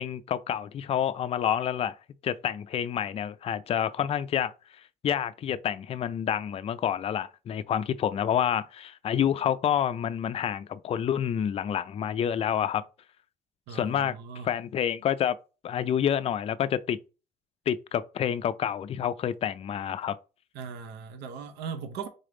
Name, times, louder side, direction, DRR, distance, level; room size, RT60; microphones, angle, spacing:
voice 1, 0.0-2.0 2.2-4.5 5.0-12.8 13.7-14.2 14.4-15.4 15.6-17.0 17.7-20.2, left 9 dB, 35° left, 0.3 m, -28 dB
voice 2, 13.7-14.5 20.5-22.1, right 6 dB, 85° right, 0.7 m, -38 dB
4.0 x 3.4 x 3.7 m
cardioid pair, 110°, 17 cm